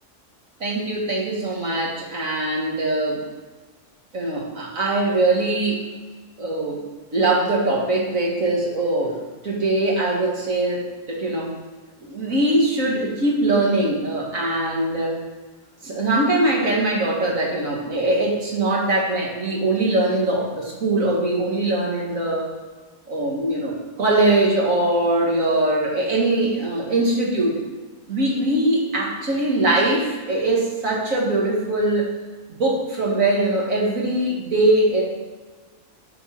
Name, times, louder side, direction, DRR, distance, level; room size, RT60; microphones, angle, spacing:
voice 1, 0.6-3.2 4.1-5.9 6.4-6.8 7.1-11.5 12.0-15.2 15.8-22.5 23.1-27.6 28.1-32.1 32.5-35.0, right 2 dB, 80° right, -3 dB, 2.3 m, -22 dB
8.9 x 4.7 x 5.9 m, 1.3 s
omnidirectional pair, 1.4 m